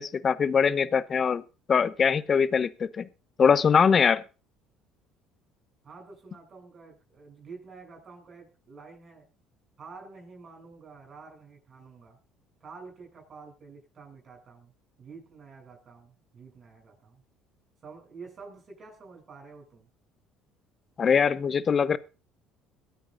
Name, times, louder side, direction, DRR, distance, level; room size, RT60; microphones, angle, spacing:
voice 1, 0.0-1.4 1.7-3.1 3.4-4.2 21.0-22.0, left 6 dB, 40° left, 16 dB, 0.8 m, -22 dB
voice 2, 5.8-9.3 9.8-12.2 12.6-14.7 15.0-17.2 17.8-19.9, right 4 dB, 40° right, 1 dB, 7.7 m, -48 dB
22.5 x 9.2 x 2.6 m, 0.33 s
supercardioid pair, 80°, 0 cm